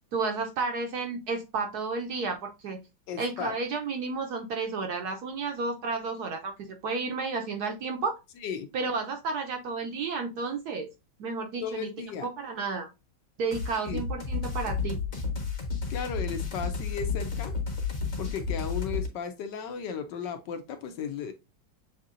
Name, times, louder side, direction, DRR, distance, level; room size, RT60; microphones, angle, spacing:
voice 1, 0.1-2.8 3.2-8.2 8.7-10.9 11.2-11.9 12.2-12.9 13.4-15.0, right 4 dB, 65° right, 1.0 m, -32 dB
voice 2, 3.1-3.6 8.4-8.7 11.6-12.3 13.8-14.0 15.9-17.6 18.2-21.3, left 6 dB, 70° left, 1.2 m, -35 dB
sound 1, 13.5-19.1, left 5 dB, 40° left, 1.4 m, -32 dB
7.2 x 2.8 x 2.4 m
omnidirectional pair, 2.1 m